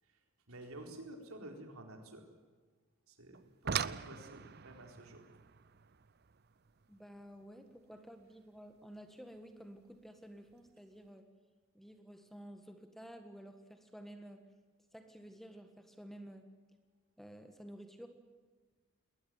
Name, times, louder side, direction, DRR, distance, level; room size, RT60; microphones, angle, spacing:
voice 1, 0.0-2.3 3.1-5.4, right 1 dB, 85° right, 4 dB, 4.2 m, -51 dB
sound 1, 3.3-8.4 9.8-9.9 10.5-10.7 11.0-11.1, right 7 dB, 50° right, 0.6 m, -42 dB
voice 2, 6.9-11.3 11.7-14.5 14.9-16.5 17.2-18.1, equal, ahead, 7 dB, 1.6 m, -52 dB
21.0 x 19.0 x 9.3 m, 1.4 s
head